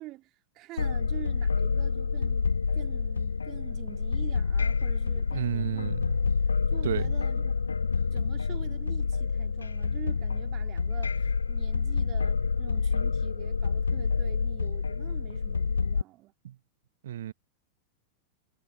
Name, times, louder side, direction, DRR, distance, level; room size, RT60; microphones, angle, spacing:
voice 1, 0.0-6.1 6.7-7.7 8.1-16.3, right 18 dB, 35° right, 3.9 m, -46 dB
sound 1, 0.8-16.0, left 5 dB, 75° left, 1.5 m, -28 dB
voice 2, 5.3-6.2 6.8-7.1 16.4-16.6 17.0-17.3, right 11 dB, 60° right, 1.4 m, -32 dB
figure-of-eight pair, 90°, 0 cm